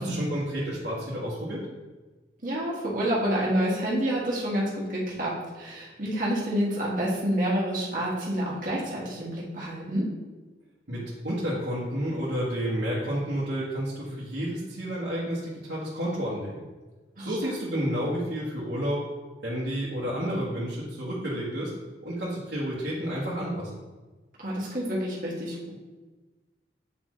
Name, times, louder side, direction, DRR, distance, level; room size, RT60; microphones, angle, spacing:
voice 1, 0.0-1.6 10.9-16.6 17.2-19.0 19.4-21.7 22.0-23.7, equal, 80° right, -9 dB, 1.5 m, -30 dB
voice 2, 2.4-10.1 17.2-17.4 24.4-25.7, equal, 50° right, -5 dB, 1.7 m, -28 dB
8.4 x 4.2 x 3.1 m, 1.3 s
head